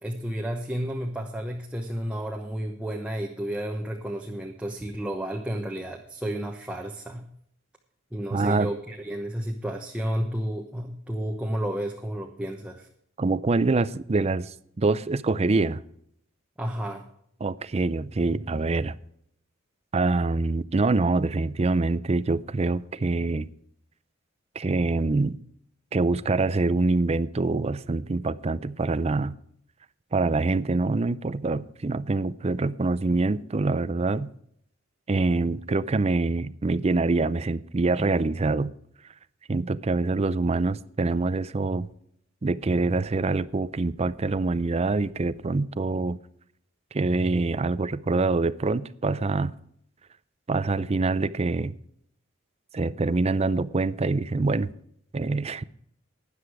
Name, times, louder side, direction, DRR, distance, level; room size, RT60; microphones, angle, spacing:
voice 1, 0.0-7.2 8.1-12.9 16.6-17.0, right 1 dB, 5° right, 1.0 m, -31 dB
voice 2, 8.3-8.7 13.2-15.8 17.4-18.9 19.9-23.5 24.6-25.4 25.9-29.4 30.1-34.3 35.1-38.7 39.5-41.9 42.4-46.2 46.9-49.5 50.5-51.7 52.7-54.7 55.1-55.6, right 3 dB, 30° right, 0.5 m, -25 dB
12.5 x 9.8 x 4.7 m
head